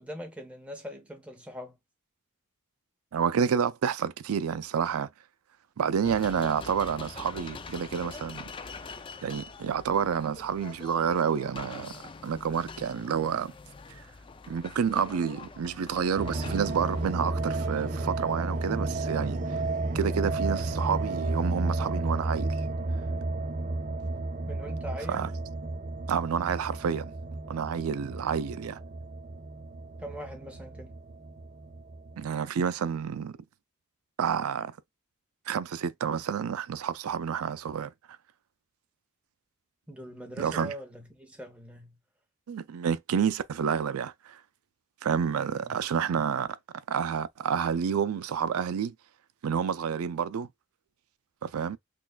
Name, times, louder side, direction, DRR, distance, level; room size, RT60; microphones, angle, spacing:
voice 1, 0.0-1.8 24.5-25.4 30.0-31.0 39.9-42.0 45.5-45.7, equal, 5° right, 1.0 m, -42 dB
voice 2, 3.1-5.1 5.8-8.5 9.2-11.9 12.2-13.5 14.5-19.4 19.9-22.5 25.1-25.3 26.1-27.1 27.5-28.8 32.2-33.3 34.2-34.7 35.5-37.9 40.4-40.7 42.5-44.4 45.0-46.5 46.9-48.9 49.4-50.5 51.4-51.8, right 7 dB, 85° right, 0.4 m, -29 dB
sound 1, 6.0-17.1, left 4 dB, 25° left, 0.3 m, -44 dB
sound 2, 16.2-32.2, right 2 dB, 35° right, 0.6 m, -32 dB
6.1 x 2.4 x 2.2 m
head